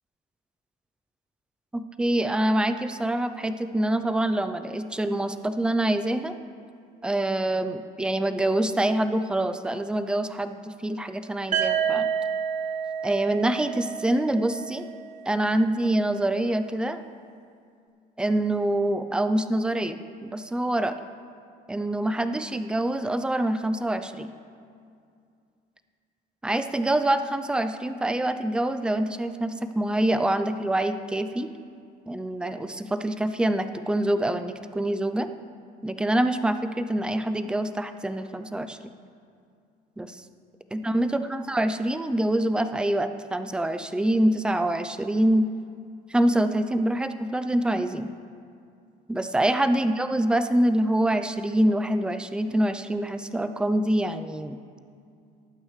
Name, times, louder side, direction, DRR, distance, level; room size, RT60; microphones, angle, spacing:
voice 1, 1.7-6.3 7.0-12.1 13.0-14.9 15.3-17.0 18.2-20.9 21.7-24.3 26.4-31.5 32.1-35.3 35.8-38.9 40.0-40.2 40.7-45.5 46.1-48.1 49.1-54.6, right 1 dB, 5° right, 9 dB, 0.5 m, -25 dB
sound 1, 11.5-15.4, right 7 dB, 45° right, 1.1 m, -29 dB
19.0 x 8.8 x 3.3 m, 2.3 s
cardioid pair, 110°, 17 cm